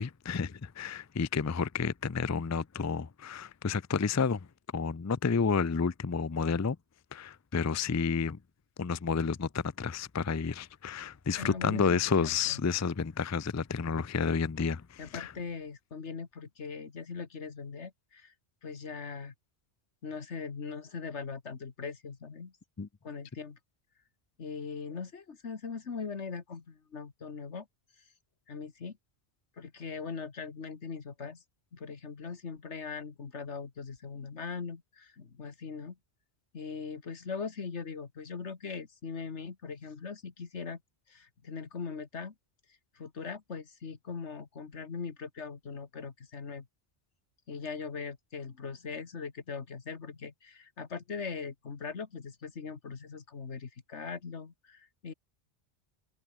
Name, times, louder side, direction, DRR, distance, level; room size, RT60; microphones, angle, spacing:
voice 1, 0.0-4.5 4.7-6.8 7.1-8.4 8.8-15.3 22.8-22.9, left 5 dB, 25° left, 0.3 m, -30 dB
voice 2, 11.4-12.6 15.0-18.3 18.6-19.3 20.0-22.5 23.0-23.6 24.4-27.7 28.5-29.0 29.6-31.4 31.7-36.0 36.5-40.8 41.1-42.3 43.0-46.7 47.5-55.1, left 5 dB, 85° left, 2.0 m, -40 dB
omnidirectional pair, 1.1 m